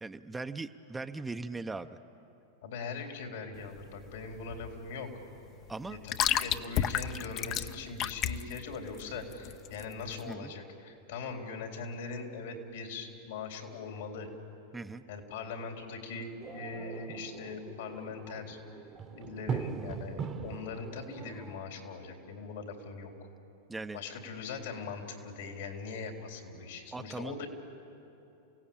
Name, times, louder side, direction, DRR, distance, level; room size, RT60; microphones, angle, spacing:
voice 1, 0.0-2.0 5.7-6.0 10.3-10.5 14.7-15.0 23.7-24.0 26.9-27.3, right 3 dB, 10° right, 8 dB, 0.7 m, -39 dB
voice 2, 2.6-5.1 5.9-14.3 15.1-18.6 19.1-23.1 23.9-27.5, left 4 dB, 75° left, 3 dB, 3.8 m, -41 dB
sound 1, 3.5-10.3, left 10 dB, 40° left, 0.7 m, -34 dB
sound 2, 16.4-21.6, right 6 dB, 30° right, 1.1 m, -40 dB
29.0 x 17.0 x 8.8 m, 2.8 s
hypercardioid pair, 115°, 0 cm